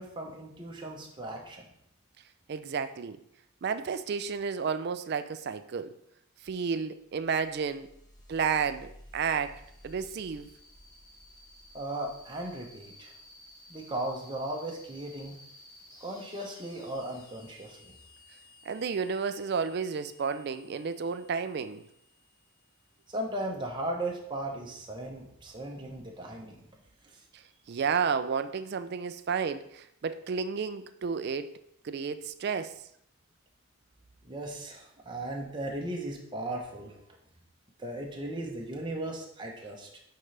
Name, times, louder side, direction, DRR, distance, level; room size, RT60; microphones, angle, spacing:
voice 1, 0.0-1.7 11.7-13.1 13.7-15.4 16.0-17.9 23.1-26.7 27.0-27.2 34.2-37.0 37.8-40.0, right 1 dB, 20° right, 0.8 m, -37 dB
voice 2, 2.5-3.2 3.6-5.9 6.4-7.9 8.3-10.5 18.7-21.8 27.7-31.5 31.8-32.7, right 6 dB, 50° right, 0.3 m, -31 dB
sound 1, 7.1-23.4, left 1 dB, 15° left, 1.1 m, -55 dB
9.6 x 3.8 x 3.3 m
head